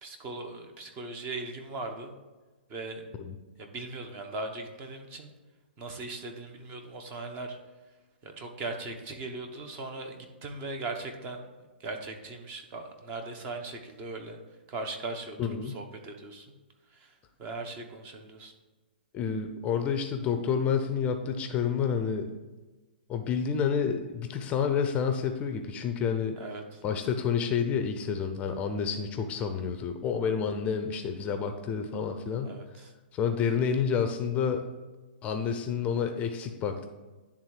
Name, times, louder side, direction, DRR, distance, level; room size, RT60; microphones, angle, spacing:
voice 1, 0.0-2.2 2.7-3.0 3.6-5.3 5.8-7.6 8.2-11.5 11.8-14.4 14.7-15.4 15.6-16.5 16.9-17.1 17.4-18.5 26.4-26.8 32.4-32.9, right 3 dB, 30° right, 5 dB, 1.0 m, -39 dB
voice 2, 15.4-15.8 19.1-22.3 23.1-26.4 26.8-32.5 33.1-34.6 35.2-36.9, left 6 dB, 20° left, 6 dB, 0.6 m, -29 dB
10.5 x 3.6 x 4.9 m, 1.2 s
hypercardioid pair, 135°, 6 cm